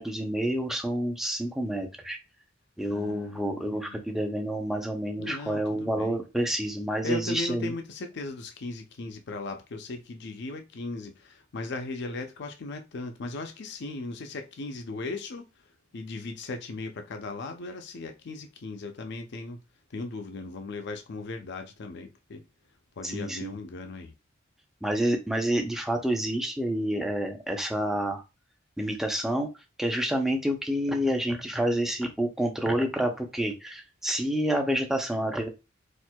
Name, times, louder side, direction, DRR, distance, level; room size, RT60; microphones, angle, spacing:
voice 1, 0.0-2.2 2.8-7.7 23.0-23.5 24.8-28.2 28.8-29.5 29.8-35.5, right 1 dB, ahead, 0.6 m, -28 dB
voice 2, 2.8-4.0 5.2-6.2 7.0-15.5 15.9-19.6 19.9-22.4 23.0-24.1, left 3 dB, 60° left, 0.5 m, -37 dB
4.3 x 2.6 x 2.2 m
head